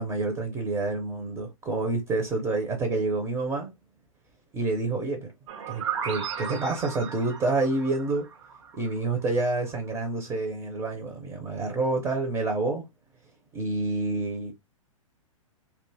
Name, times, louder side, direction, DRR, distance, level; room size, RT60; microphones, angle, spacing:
voice 1, 0.0-3.7 4.5-5.3 5.7-8.3 8.8-12.8 13.5-14.5, right 3 dB, 15° right, 0.6 m, -28 dB
sound 1, 5.5-9.2, right 7 dB, 60° right, 0.6 m, -35 dB
2.7 x 2.3 x 2.6 m
figure-of-eight pair, 115°, 17 cm